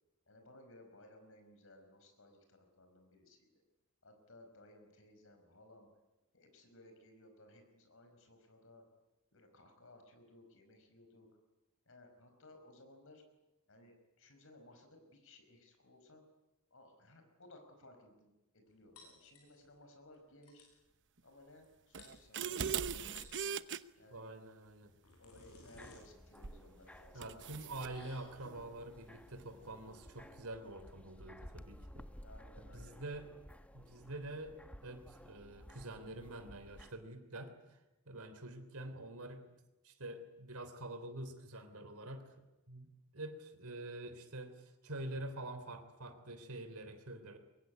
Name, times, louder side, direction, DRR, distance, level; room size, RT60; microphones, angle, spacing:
voice 1, 0.3-3.5 4.0-5.9 6.3-8.9 9.3-11.3 11.9-13.2 13.7-16.2 16.7-20.7 21.2-23.3 24.0-24.2 25.2-28.8 32.2-33.2, left 1 dB, 60° left, 5 dB, 5.1 m, -60 dB
sound 1, 19.0-19.8 20.1-20.2 20.4-20.8 21.6-21.7 22.0-22.6 23.0-23.5 24.7-31.3, left 3 dB, 80° left, 7.6 m, -61 dB
sound 2, 21.9-23.8 26.4-26.7 27.2-27.9, right 7 dB, 55° right, 0.9 m, -39 dB
voice 2, 24.1-24.9 27.1-32.1 32.6-33.3 33.7-37.8 38.1-39.5 39.8-42.4 42.7-47.4, right 1 dB, 80° right, 8 dB, 3.3 m, -47 dB
sound 3, 25.7-36.9, equal, 5° left, 1.1 m, -56 dB
24.5 x 22.5 x 9.6 m, 0.99 s
head